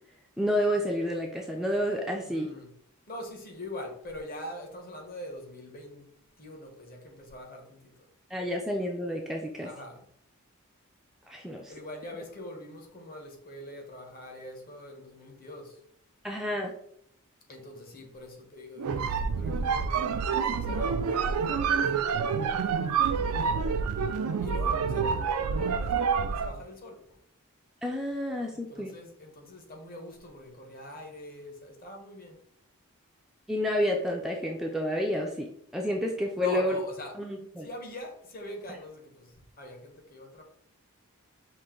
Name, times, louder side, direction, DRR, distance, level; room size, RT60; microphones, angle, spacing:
voice 1, 0.4-2.5 8.3-9.7 11.3-11.7 16.2-16.7 27.8-28.9 33.5-35.5 35.7-36.8 37.2-37.7, equal, ahead, 0.4 m, -29 dB
voice 2, 2.2-2.7 3.1-6.1 6.4-8.0 9.6-10.1 11.7-15.8 17.5-20.2 20.5-24.0 24.4-27.1 28.5-32.4 36.4-37.1 37.6-40.4, left 1 dB, 40° left, 1.0 m, -43 dB
sound 1, 18.8-26.6, right 6 dB, 90° right, 0.4 m, -28 dB
5.4 x 2.5 x 3.7 m
head